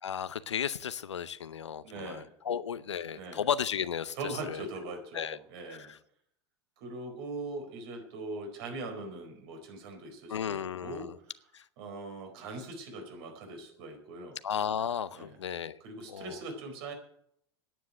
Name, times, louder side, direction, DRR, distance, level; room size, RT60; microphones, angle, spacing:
voice 1, 0.0-4.6 5.1-5.4 5.7-6.0 10.3-11.1 11.5-11.6 14.4-15.8 16.1-16.4, left 8 dB, 85° left, 16 dB, 0.7 m, -34 dB
voice 2, 1.8-2.6 3.1-3.4 4.1-5.9 6.8-11.1 11.8-14.4 15.1-15.3 15.8-16.9, right 2 dB, 60° right, 4 dB, 4.5 m, -41 dB
10.0 x 9.2 x 9.0 m, 0.70 s
hypercardioid pair, 90°, 15 cm